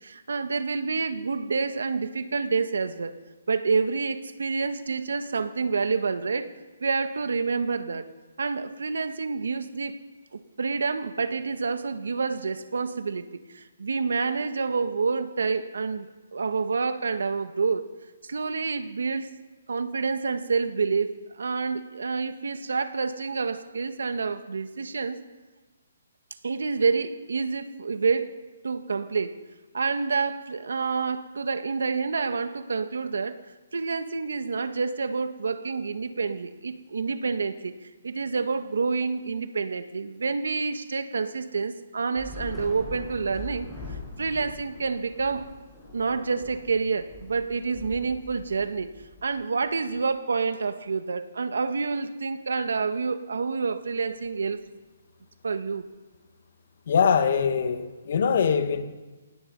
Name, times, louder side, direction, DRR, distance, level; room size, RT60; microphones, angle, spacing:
voice 1, 0.0-3.1 3.5-6.5 6.8-8.1 8.4-10.0 10.3-17.9 18.2-19.3 19.7-25.2 26.4-28.4 28.6-29.4 29.7-33.4 33.7-45.5 45.9-48.9 49.2-54.6 55.4-55.9, right 4 dB, 85° right, 1.7 m, -28 dB
Thunder / Rain, 42.1-49.7, left 2 dB, 5° left, 6.9 m, -42 dB
voice 2, 56.9-58.8, left 6 dB, 50° left, 2.1 m, -23 dB
27.5 x 18.5 x 5.5 m
hypercardioid pair, 165°, 0 cm